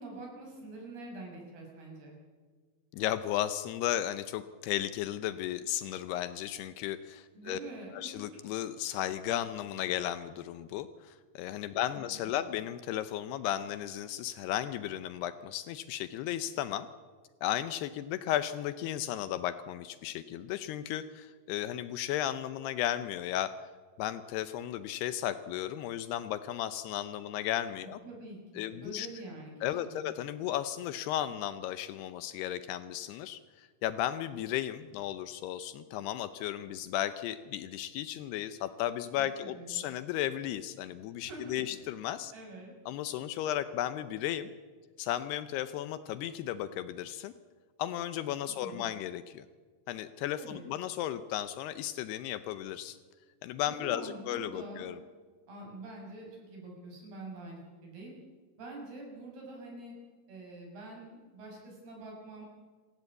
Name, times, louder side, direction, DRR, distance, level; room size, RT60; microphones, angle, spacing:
voice 1, 0.0-2.2 7.3-8.1 11.9-12.5 28.0-30.1 39.2-39.8 41.2-41.7 42.3-42.7 48.5-48.8 50.4-50.7 53.7-54.9 55.5-58.1 58.6-59.9 60.3-62.5, right 2 dB, 50° right, -1 dB, 8.0 m, -46 dB
voice 2, 2.9-7.6 7.9-16.9 17.4-23.5 24.0-28.0 28.6-29.1 29.6-42.3 42.9-44.5 45.0-47.3 47.8-49.5 49.9-53.0 53.4-55.0, left 12 dB, 85° left, 12 dB, 2.3 m, -35 dB
27.0 x 16.0 x 8.3 m, 1.5 s
omnidirectional pair, 5.7 m